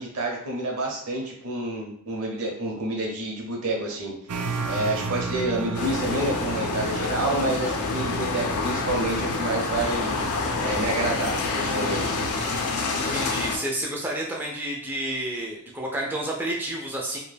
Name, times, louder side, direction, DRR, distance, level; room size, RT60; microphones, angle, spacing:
voice 1, 0.0-4.1 4.7-10.2 10.6-12.0, right 2 dB, 70° right, -1 dB, 0.8 m, -28 dB
sound 1, 4.3-12.7, right 4 dB, 90° right, 0.4 m, -34 dB
sound 2, 5.7-13.6, left 3 dB, 85° left, 0.5 m, -27 dB
voice 2, 12.9-17.2, right 1 dB, 10° right, -2 dB, 0.3 m, -30 dB
2.2 x 2.1 x 3.2 m, 0.68 s
head